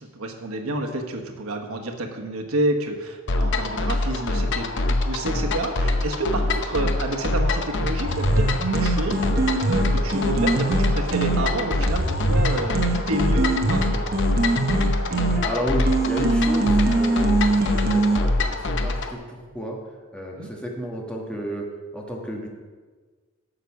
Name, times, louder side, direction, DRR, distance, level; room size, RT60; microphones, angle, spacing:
voice 1, 0.0-14.0 20.3-20.5, right 2 dB, 85° right, 3 dB, 1.2 m, -29 dB
sound 1, 3.3-19.1, left 2 dB, 55° left, 0.7 m, -24 dB
sound 2, 8.1-18.2, right 2 dB, 45° right, 1.0 m, -24 dB
voice 2, 15.4-19.8 20.1-21.7 21.9-22.5, equal, 5° left, -1 dB, 1.4 m, -32 dB
10.0 x 6.7 x 5.9 m, 1.4 s
head